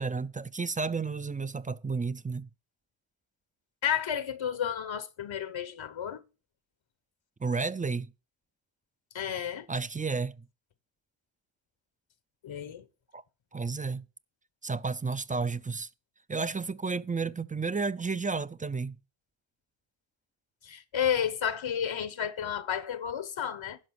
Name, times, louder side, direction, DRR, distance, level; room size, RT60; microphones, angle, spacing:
voice 1, 0.0-2.5 7.4-8.1 9.7-10.5 13.1-13.2 13.5-14.0 14.6-15.9 16.3-19.0, right 4 dB, 20° right, 0.4 m, -32 dB
voice 2, 3.8-6.2 9.1-9.7 12.4-12.8 20.6-23.8, left 9 dB, 75° left, 1.0 m, -31 dB
11.5 x 5.0 x 6.3 m
wide cardioid pair, 75°, 47 cm